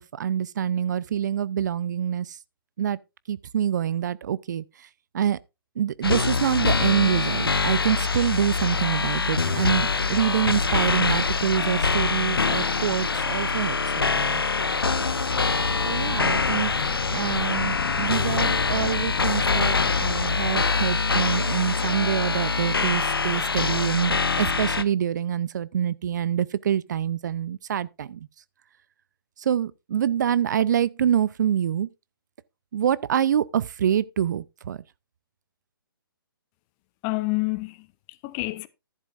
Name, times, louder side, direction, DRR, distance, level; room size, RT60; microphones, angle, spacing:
voice 1, 0.0-2.4 2.8-3.0 3.3-4.9 5.1-5.4 5.8-14.4 15.9-16.7 17.0-28.3 29.4-31.9 32.7-34.8, right 9 dB, 55° right, 0.5 m, -26 dB
sound 1, 6.0-24.8, left 4 dB, 80° left, 0.9 m, -24 dB
sound 2, 14.8-21.5, left 7 dB, 55° left, 1.2 m, -35 dB
voice 2, 37.0-38.7, left 24 dB, 25° left, 0.7 m, -29 dB
11.0 x 11.0 x 2.5 m
figure-of-eight pair, 130°, 12 cm